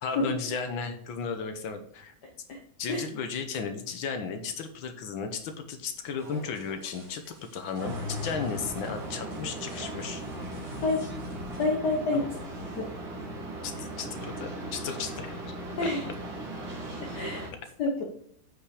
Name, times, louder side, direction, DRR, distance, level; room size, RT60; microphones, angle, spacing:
voice 1, 0.0-2.1 2.8-10.2 12.1-12.3 13.6-15.4 15.8-15.9, left 5 dB, 80° left, 7 dB, 1.7 m, -35 dB
sound 1, 6.2-11.7, equal, 40° right, 3.9 m, -49 dB
sound 2, 7.8-17.5, right 1 dB, 80° right, 3.1 m, -37 dB
voice 2, 11.6-12.4 12.7-12.9 15.8-16.1 17.1-17.5 17.8-18.0, left 2 dB, 60° left, 0 dB, 1.8 m, -28 dB
8.4 x 5.5 x 4.9 m, 0.66 s
omnidirectional pair, 2.2 m